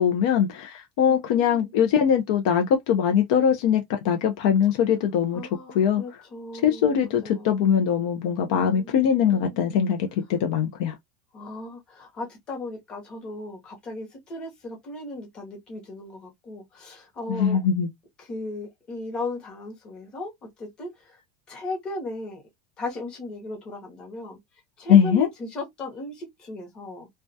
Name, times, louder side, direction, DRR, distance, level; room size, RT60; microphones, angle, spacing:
voice 1, 0.0-5.4 5.7-6.0 6.6-10.9 17.3-17.9 24.9-25.3, left 8 dB, 60° left, 0.5 m, -21 dB
voice 2, 1.1-1.7 5.3-7.7 8.5-9.8 11.3-17.6 18.2-21.2 21.5-22.4 22.8-24.4 24.8-27.1, left 2 dB, 25° left, 0.8 m, -37 dB
2.2 x 2.2 x 2.6 m
supercardioid pair, 170°, 4 cm